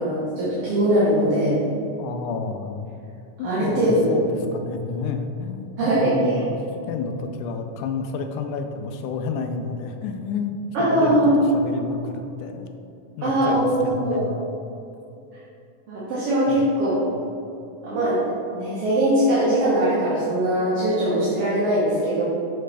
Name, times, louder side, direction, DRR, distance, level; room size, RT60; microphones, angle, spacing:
voice 1, 0.0-1.6 3.4-4.1 5.8-6.2 10.7-11.3 13.2-14.3 15.9-17.0 17.8-18.2 18.5-22.2, right 1 dB, 60° right, -10 dB, 1.8 m, -21 dB
voice 2, 2.0-2.8 3.4-4.3 4.5-6.6 6.9-11.2 11.5-12.7 13.2-14.4 16.5-16.6 17.1-17.2, left 5 dB, 85° left, 6 dB, 2.0 m, -30 dB
6.6 x 5.1 x 3.3 m, 2.7 s
omnidirectional pair, 3.5 m